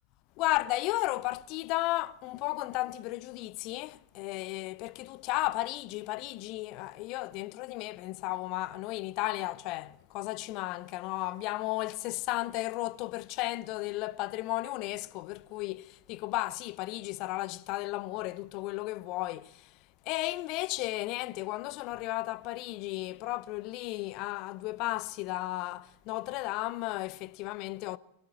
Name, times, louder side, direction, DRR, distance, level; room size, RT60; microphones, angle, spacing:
voice 1, 0.4-19.8 20.0-28.0, left 18 dB, 40° left, 0.8 m, -34 dB
24.5 x 17.0 x 7.6 m
figure-of-eight pair, 90°, 0 cm